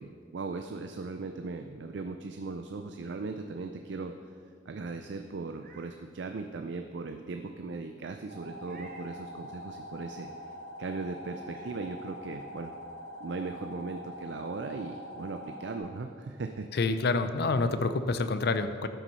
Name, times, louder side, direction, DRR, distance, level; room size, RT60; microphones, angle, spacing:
voice 1, 0.0-4.1 4.7-10.5 10.8-12.7 13.2-16.7 17.4-17.8, right 3 dB, 65° right, 6 dB, 0.4 m, -38 dB
Meow, 5.4-6.0 6.5-6.6 8.6-9.2 10.8-10.9 11.5-11.8, right 4 dB, 45° right, 0.9 m, -55 dB
sound 1, 8.3-15.8, equal, 90° right, 2.4 m, -44 dB
voice 2, 16.7-18.9, left 3 dB, 55° left, 10 dB, 0.5 m, -27 dB
12.0 x 6.0 x 5.5 m, 2.2 s
head